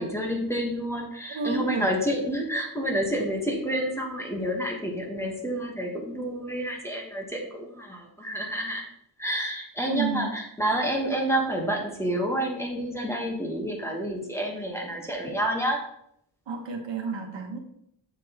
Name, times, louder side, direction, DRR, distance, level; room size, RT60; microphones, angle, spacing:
voice 1, 0.0-8.9 9.2-15.9, right 1 dB, 5° left, 0 dB, 1.1 m, -29 dB
voice 2, 1.3-1.9 9.9-10.3 16.5-17.6, right 4 dB, 75° right, 3 dB, 1.3 m, -30 dB
7.3 x 6.0 x 2.9 m, 0.72 s
wide cardioid pair, 160°, 45 cm